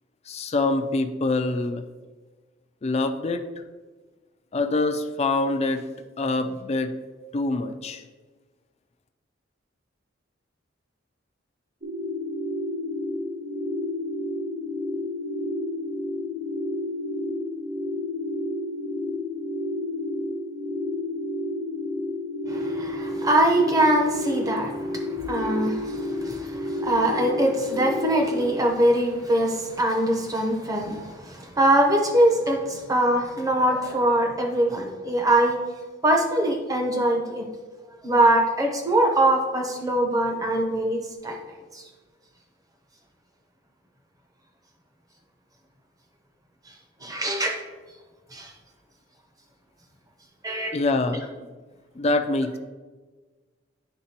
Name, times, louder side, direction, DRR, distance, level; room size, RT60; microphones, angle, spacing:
voice 1, 0.3-1.8 2.8-3.4 4.5-5.9 6.2-6.9 7.3-8.0 50.7-51.3 52.0-52.6, left 2 dB, 35° left, 7 dB, 0.4 m, -25 dB
sound 1, 11.8-28.4, left 1 dB, 65° right, 1.2 m, -30 dB
voice 2, 22.5-35.6 36.0-37.5 38.0-41.4 41.7-41.8 46.7-46.8 47.0-47.6 48.3-48.5 50.4-50.7, right 1 dB, 20° right, 2 dB, 0.8 m, -23 dB
10.0 x 3.7 x 2.9 m, 1.4 s
head